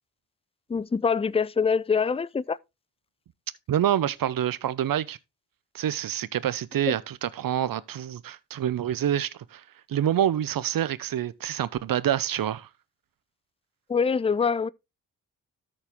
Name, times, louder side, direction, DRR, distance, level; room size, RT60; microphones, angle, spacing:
voice 1, 0.7-2.6 6.9-7.0 13.9-14.7, left 5 dB, 15° left, 0.5 m, -24 dB
voice 2, 3.7-5.2 5.7-12.7, right 10 dB, 65° right, 0.8 m, -27 dB
13.0 x 4.5 x 3.5 m
supercardioid pair, 40°, 37 cm